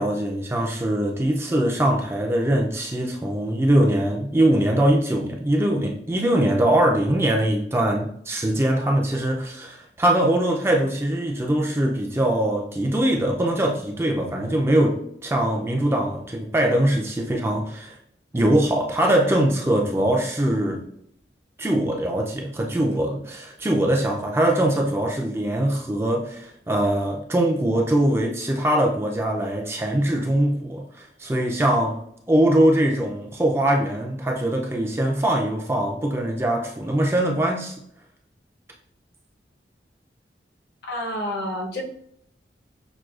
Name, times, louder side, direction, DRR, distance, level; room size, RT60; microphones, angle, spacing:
voice 1, 0.0-18.0 18.3-20.8 21.6-32.0 32.3-37.8, right 1 dB, 15° right, 0.3 m, -22 dB
voice 2, 40.8-41.8, left 1 dB, 65° left, 0.8 m, -29 dB
6.0 x 2.3 x 2.4 m
head